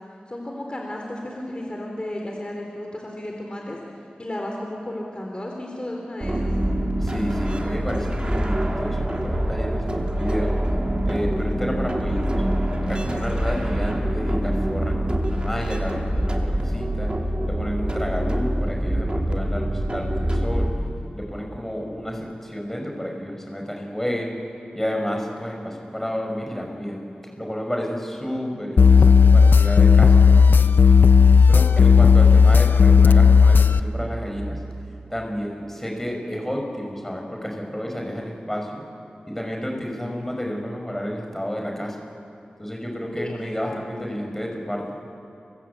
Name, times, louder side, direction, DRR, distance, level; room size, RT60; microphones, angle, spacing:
voice 1, 0.3-3.8 4.2-6.5 43.2-44.1, left 1 dB, 30° left, 0 dB, 3.9 m, -33 dB
sound 1, 6.2-20.7, right 1 dB, 30° right, 3.3 m, -25 dB
voice 2, 7.0-10.5 11.0-12.4 12.8-17.1 17.4-20.7 21.1-24.3 24.7-27.0 27.4-30.9 31.5-34.6 35.1-38.8 39.3-42.0 42.6-45.0, equal, 10° left, 1 dB, 5.9 m, -30 dB
sound 2, 28.8-33.8, left 5 dB, 85° left, 0.7 m, -13 dB
29.5 x 24.0 x 8.4 m, 2.7 s
wide cardioid pair, 75°, 3 cm